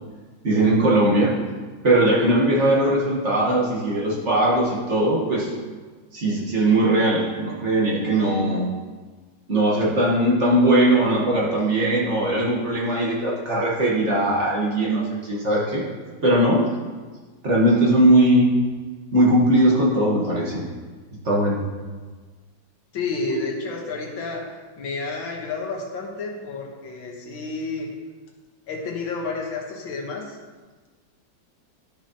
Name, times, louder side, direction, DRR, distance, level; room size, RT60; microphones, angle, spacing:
voice 1, 0.4-1.4 1.8-5.5 6.1-8.7 9.5-15.8 16.2-16.6 17.4-18.6 19.1-20.6 21.2-21.6 23.3-23.5, right 1 dB, 40° right, -4 dB, 1.6 m, -19 dB
voice 2, 22.9-24.4 24.8-27.9 28.7-30.4, left 4 dB, 80° left, 0 dB, 2.0 m, -30 dB
12.5 x 6.0 x 2.9 m, 1.4 s
omnidirectional pair, 2.1 m